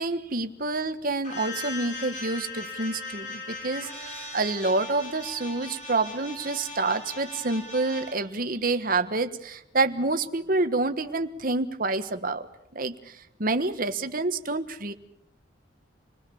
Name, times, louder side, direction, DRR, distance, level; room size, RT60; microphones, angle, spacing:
voice 1, 0.0-12.5 12.7-14.9, right 3 dB, 45° right, 8 dB, 1.4 m, -28 dB
sound 1, 1.2-8.1, left 2 dB, 40° left, 7.2 m, -39 dB
28.0 x 20.0 x 7.1 m, 0.77 s
head